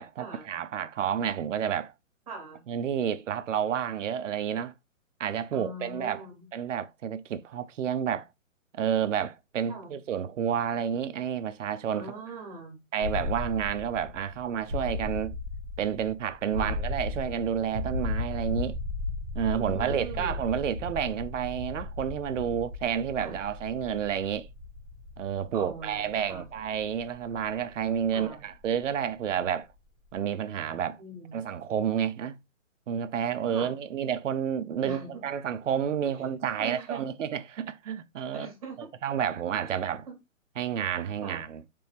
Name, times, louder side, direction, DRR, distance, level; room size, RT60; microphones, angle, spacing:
voice 1, 0.0-1.9 2.7-4.7 5.2-6.2 6.5-8.3 8.7-12.2 12.9-15.3 15.8-18.8 19.3-24.5 25.2-29.7 30.1-31.0 31.3-32.4 32.9-38.5 39.0-40.1 40.6-41.6, right 8 dB, 65° right, 0.5 m, -30 dB
voice 2, 2.3-2.6 5.5-6.5 9.7-9.9 11.9-12.8 16.5-16.8 19.5-20.4 23.2-23.4 25.5-26.5 28.1-28.4 31.0-31.6 33.5-33.8 34.8-35.2 36.1-36.3 36.6-37.1 38.3-38.9 39.7-39.8 40.1-40.2 41.2-41.4, right 3 dB, 25° right, 1.0 m, -42 dB
sound 1, 13.0-28.8, left 3 dB, 5° left, 0.7 m, -36 dB
3.3 x 2.9 x 3.3 m
hypercardioid pair, 170°, 40 cm